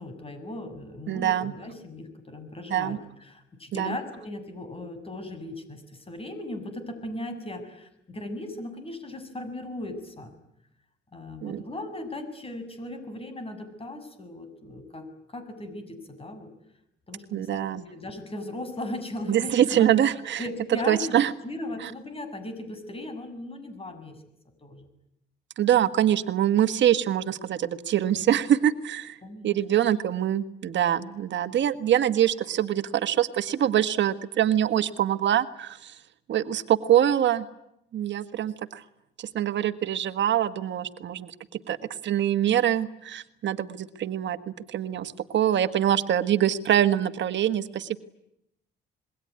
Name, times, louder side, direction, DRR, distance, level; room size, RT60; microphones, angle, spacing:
voice 1, 0.0-10.3 11.1-16.5 17.1-19.9 20.4-21.2 21.4-24.2 24.6-24.9 29.2-29.6, left 1 dB, 30° left, 9 dB, 7.4 m, -37 dB
voice 2, 1.1-1.5 2.7-3.0 3.8-4.0 11.4-11.6 17.3-17.8 19.3-20.4 20.9-21.3 21.8-21.9 25.6-29.2 29.4-36.0 36.3-37.5 37.9-38.8 39.2-41.8 42.0-48.0, right 11 dB, 65° right, 10 dB, 1.5 m, -24 dB
27.0 x 22.0 x 9.7 m, 0.82 s
cardioid pair, 90°, 20 cm